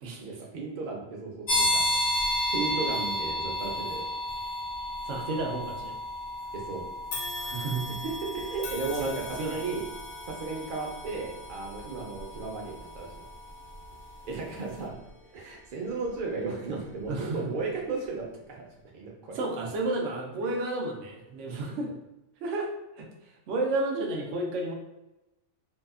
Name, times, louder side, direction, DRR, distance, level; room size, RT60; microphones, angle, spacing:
voice 1, 0.2-1.8 2.5-4.0 6.5-6.9 8.0-9.8 10.3-13.1 14.3-14.9 15.3-18.6 18.9-19.4, right 4 dB, 55° right, -1 dB, 0.7 m, -35 dB
sound 1, 1.5-14.0, left 1 dB, 55° left, 0.7 m, -33 dB
voice 2, 5.0-6.0 7.3-7.9 9.0-9.6 17.1-17.4 19.3-21.9 22.4-22.7 23.0-24.7, right 2 dB, 90° right, 0 dB, 0.9 m, -32 dB
sound 2, 7.1-16.4 16.9-17.1 18.1-18.2, left 2 dB, 80° left, 0.9 m, -43 dB
2.7 x 2.3 x 2.3 m, 0.94 s
omnidirectional pair, 1.2 m